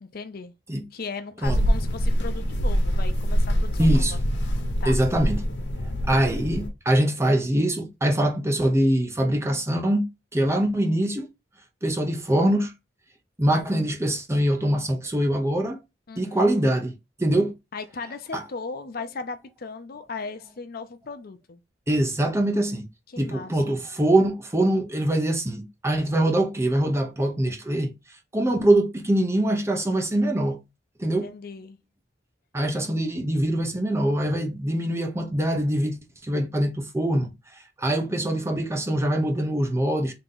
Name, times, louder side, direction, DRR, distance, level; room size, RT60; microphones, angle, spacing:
voice 1, 0.0-0.5 0.9-4.0 4.8-5.0 16.1-16.5 17.7-21.6 23.1-23.8 31.0-31.8, left 4 dB, 55° left, 0.6 m, -37 dB
sound 1, 1.4-6.7, equal, 75° left, 1.2 m, -24 dB
voice 2, 3.8-4.2 4.9-5.4 6.1-10.1 10.3-11.3 11.8-12.7 13.4-15.8 16.2-16.9 17.2-17.5 18.3-18.4 21.9-22.8 23.2-27.9 28.3-30.6 31.0-31.3 32.5-36.0 36.2-37.3 37.8-40.1, right 1 dB, 15° right, 0.7 m, -23 dB
3.8 x 2.9 x 3.7 m
head